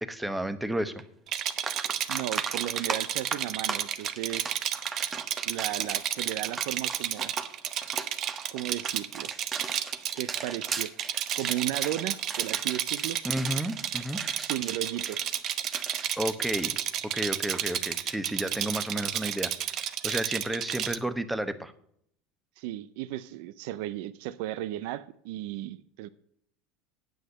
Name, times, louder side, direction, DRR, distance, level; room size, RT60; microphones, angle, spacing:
voice 1, 0.0-0.9 13.2-14.2 16.2-16.7 17.0-19.5 20.0-21.7, right 1 dB, 5° right, 11 dB, 1.0 m, -31 dB
sound 1, 1.0-1.1 1.5-17.1 17.4-17.6 20.1-20.2, right 4 dB, 25° right, 1.1 m, -39 dB
Rattle, 1.3-21.0, right 10 dB, 50° right, 0.9 m, -32 dB
voice 2, 2.1-4.5 5.4-7.3 8.5-9.3 10.1-11.0 11.3-13.2 14.4-15.2 22.6-26.1, right 14 dB, 70° right, 17 dB, 0.5 m, -35 dB
9.1 x 8.0 x 6.6 m, 0.69 s
supercardioid pair, 105°, 0 cm